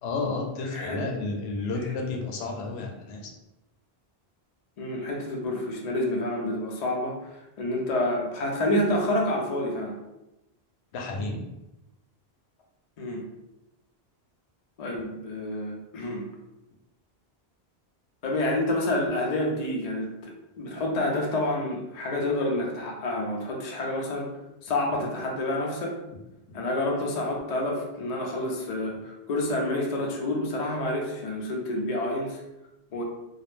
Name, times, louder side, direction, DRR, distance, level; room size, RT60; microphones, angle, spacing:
voice 1, 0.0-3.3 10.9-11.4, left 3 dB, 80° left, 1 dB, 0.8 m, -31 dB
voice 2, 0.7-1.0 4.8-7.2 7.6-10.0 13.0-13.2 14.8-16.2 18.2-24.3 24.6-26.0 26.5-32.4 32.9-33.0, left 1 dB, 50° left, 0 dB, 0.5 m, -28 dB
2.2 x 2.0 x 3.0 m, 0.92 s
omnidirectional pair, 1.1 m